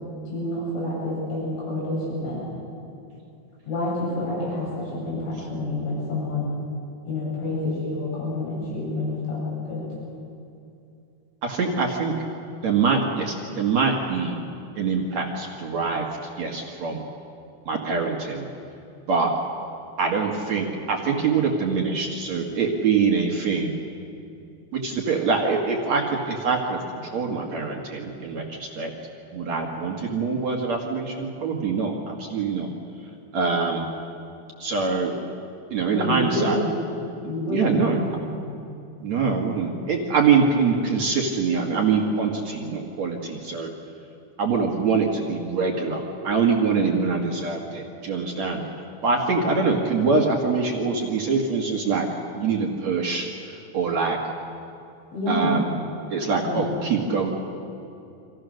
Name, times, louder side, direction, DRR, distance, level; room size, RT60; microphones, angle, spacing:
voice 1, 0.3-2.5 3.7-6.6 7.1-9.8 35.9-36.7 37.3-37.9 38.3-38.6 46.8-46.9 55.1-55.6 56.4-56.7, left 1 dB, 75° left, -6 dB, 10.5 m, -28 dB
voice 2, 11.4-12.3 12.6-14.4 14.8-16.1 16.4-17.0 17.7-18.5 19.1-19.3 20.0-23.8 24.7-28.9 29.3-32.7 33.0-33.9 34.6-35.1 35.7-36.6 37.2-38.0 39.0-43.7 44.4-52.1 52.4-54.3 55.3-55.7 56.1-57.3, right 5 dB, 50° right, 0 dB, 2.3 m, -24 dB
29.5 x 25.5 x 6.5 m, 2.7 s
omnidirectional pair, 5.6 m